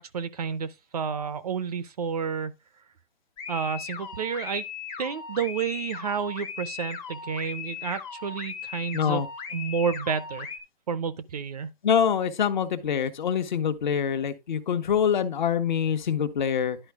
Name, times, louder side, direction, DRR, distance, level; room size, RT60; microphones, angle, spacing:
voice 1, 0.0-2.5 3.5-4.7 5.0-9.2 9.5-10.5 10.9-11.7, right 6 dB, 40° right, 0.6 m, -30 dB
sound 1, 3.4-10.6, left 7 dB, 10° left, 0.7 m, -38 dB
voice 2, 8.9-9.3 11.8-16.8, left 8 dB, 50° left, 1.1 m, -25 dB
11.0 x 4.5 x 3.5 m
hypercardioid pair, 160°, 29 cm